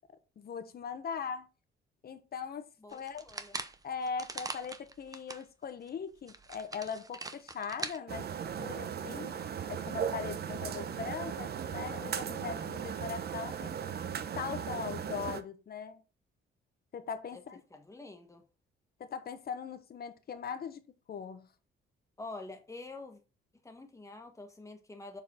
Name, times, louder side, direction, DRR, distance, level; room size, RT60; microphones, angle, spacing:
voice 1, 0.4-1.5 2.0-3.2 3.8-8.3 8.6-9.3 9.7-13.8 14.4-16.0 16.9-17.6 19.0-20.8 21.1-21.5, left 6 dB, 50° left, 1.1 m, -40 dB
voice 2, 2.8-3.6 17.3-17.4 17.7-18.4 22.2-23.2 23.6-25.2, left 2 dB, 15° left, 1.5 m, -47 dB
sound 1, 2.9-5.4 5.9-6.0 6.3-8.0, right 3 dB, 20° right, 0.8 m, -42 dB
sound 2, 8.1-15.4, right 8 dB, 55° right, 0.8 m, -37 dB
7.1 x 4.1 x 4.3 m
cardioid pair, 90°, 20 cm